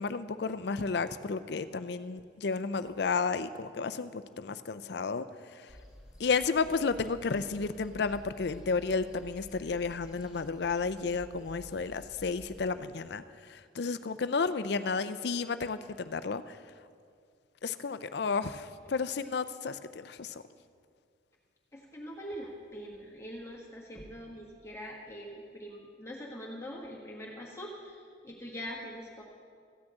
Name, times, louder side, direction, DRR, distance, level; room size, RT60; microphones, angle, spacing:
voice 1, 0.0-5.3 6.2-13.2 13.5-16.6 17.6-20.4, left 4 dB, 60° left, 12 dB, 0.5 m, -32 dB
sound 1, 5.7-12.7, equal, 5° right, 2.0 m, -52 dB
voice 2, 21.7-29.2, equal, 15° left, -3 dB, 1.4 m, -43 dB
14.5 x 6.2 x 8.7 m, 2.2 s
head